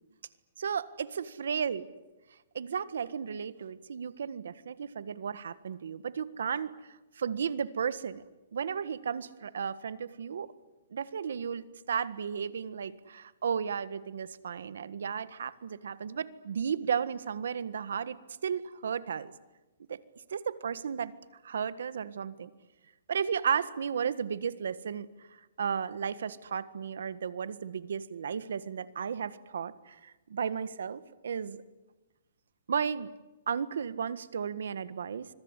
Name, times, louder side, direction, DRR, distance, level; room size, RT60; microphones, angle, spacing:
voice 1, 0.6-1.8 2.5-6.7 7.2-8.2 8.5-10.5 10.9-18.2 18.4-19.3 19.9-20.0 20.3-21.1 21.4-22.5 23.1-31.6 32.7-33.1 33.5-35.3, right 7 dB, 80° right, 15 dB, 1.6 m, -34 dB
25.5 x 23.0 x 9.9 m, 1.1 s
hypercardioid pair, 170°, 0 cm